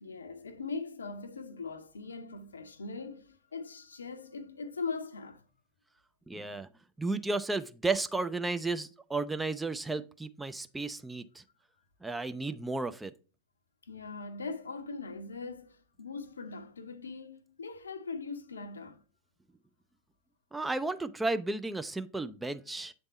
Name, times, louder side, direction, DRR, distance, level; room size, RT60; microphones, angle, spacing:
voice 1, 0.0-5.4 13.8-19.0, left 4 dB, 75° left, 0.6 m, -41 dB
voice 2, 6.3-6.7 7.0-11.4 12.0-13.1 20.5-22.9, right 3 dB, 10° right, 0.3 m, -33 dB
7.8 x 3.5 x 4.1 m
figure-of-eight pair, 90°, 0 cm